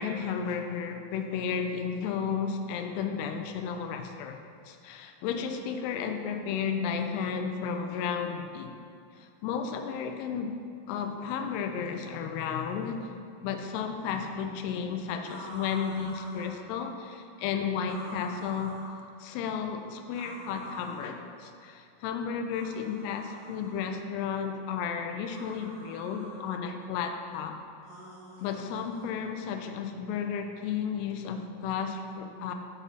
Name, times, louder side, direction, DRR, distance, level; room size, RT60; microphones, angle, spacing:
voice 1, 0.0-4.4 4.7-8.7 9.1-10.6 10.9-13.1 13.4-18.8 19.2-27.6 28.4-32.5, left 6 dB, 85° left, 6 dB, 2.5 m, -33 dB
sound 1, 15.2-16.6 17.8-19.0 20.1-21.1 22.5-23.9 25.2-26.4 27.8-29.1, left 1 dB, 70° right, 1.1 m, -46 dB
6.9 x 6.0 x 4.0 m, 2.3 s
omnidirectional pair, 4.8 m